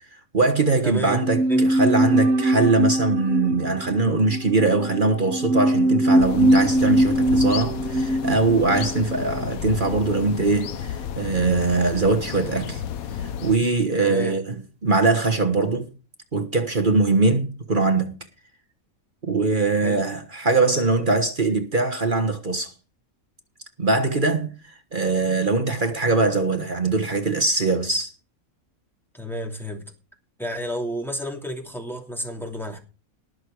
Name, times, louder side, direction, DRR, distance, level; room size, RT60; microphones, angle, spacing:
voice 1, 0.1-12.8 13.2-15.9 16.3-18.2 19.3-22.7 23.8-28.1, right 3 dB, 35° right, 1.4 m, -22 dB
voice 2, 0.8-1.2 1.5-1.7 14.0-14.4 19.8-20.0 29.1-29.8 30.4-32.8, equal, ahead, 2.8 m, -31 dB
sound 1, 1.1-10.4 10.7-10.8, right 1 dB, 70° right, 1.8 m, -22 dB
sound 2, 6.2-13.6, left 8 dB, 80° left, 1.2 m, -32 dB
19.0 x 6.7 x 4.7 m
omnidirectional pair, 1.5 m